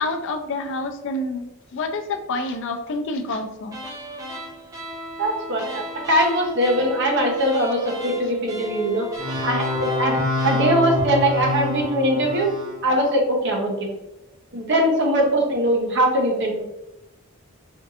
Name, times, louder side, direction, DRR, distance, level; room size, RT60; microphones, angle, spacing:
voice 1, 0.0-1.4 1.7-3.8, left 2 dB, 60° left, 5 dB, 0.4 m, -28 dB
sound 1, 3.7-11.9, equal, 15° right, 0.5 m, -36 dB
voice 2, 5.2-9.1 9.4-12.5 12.8-13.9 14.5-16.6, right 1 dB, 55° right, 1 dB, 0.7 m, -21 dB
sound 2, 9.2-12.8, left 2 dB, 90° right, 1.3 m, -26 dB
4.4 x 2.6 x 2.4 m, 0.92 s
head